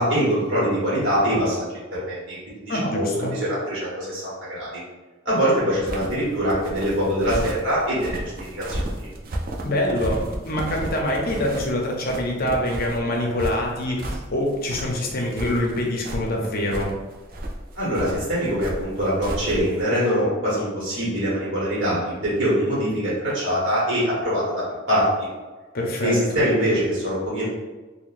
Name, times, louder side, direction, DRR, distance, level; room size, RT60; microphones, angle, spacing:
voice 1, 0.0-4.8 5.2-9.1 17.7-25.0 26.0-27.5, equal, 65° right, -7 dB, 1.2 m, -23 dB
voice 2, 2.7-3.3 9.6-16.9 25.7-26.4, left 1 dB, 50° left, -1 dB, 0.6 m, -25 dB
sound 1, 5.7-19.8, right 1 dB, 50° right, 0.4 m, -33 dB
3.7 x 2.1 x 2.5 m, 1.3 s
head